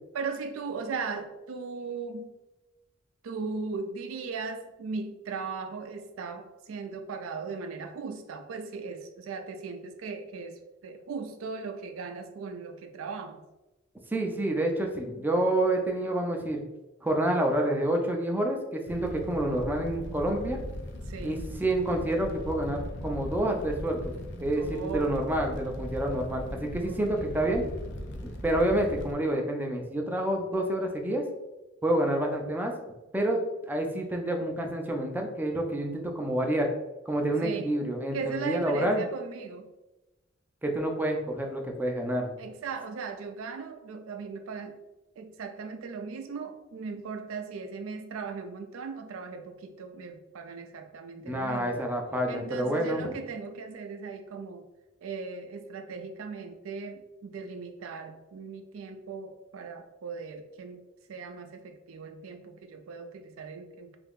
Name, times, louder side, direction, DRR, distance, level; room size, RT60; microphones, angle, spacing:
voice 1, 0.1-2.4 3.2-13.5 21.1-21.7 24.6-25.1 26.8-27.4 37.4-37.7 38.1-39.7 42.4-44.8 45.2-51.8 52.3-54.6 55.0-60.8 61.1-64.0, right 4 dB, 90° right, 7 dB, 0.4 m, -38 dB
voice 2, 14.1-16.6 17.0-20.6 21.2-27.7 28.4-31.2 31.8-32.7 33.1-36.7 37.1-39.0 40.6-42.3 51.2-53.1, right 1 dB, 10° right, 1 dB, 0.4 m, -28 dB
Fire, 18.9-29.2, left 1 dB, 60° left, 0.5 m, -39 dB
2.7 x 2.4 x 3.5 m, 1.0 s
head